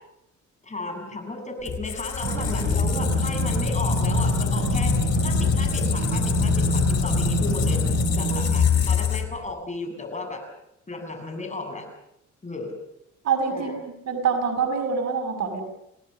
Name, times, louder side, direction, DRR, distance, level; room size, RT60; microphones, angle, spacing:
voice 1, 0.6-4.9 5.2-7.8 8.2-10.4 10.9-11.9 12.4-12.7 13.5-13.8, left 2 dB, 25° left, 4 dB, 7.6 m, -34 dB
Squeak, 1.7-9.5, left 7 dB, 55° left, 3.8 m, -24 dB
sound 1, 2.2-9.0, right 7 dB, 75° right, 6.2 m, -28 dB
voice 2, 13.2-13.7 14.1-15.6, right 6 dB, 60° right, 5 dB, 5.9 m, -25 dB
29.5 x 18.5 x 6.8 m, 0.81 s
cardioid pair, 90°, 30 cm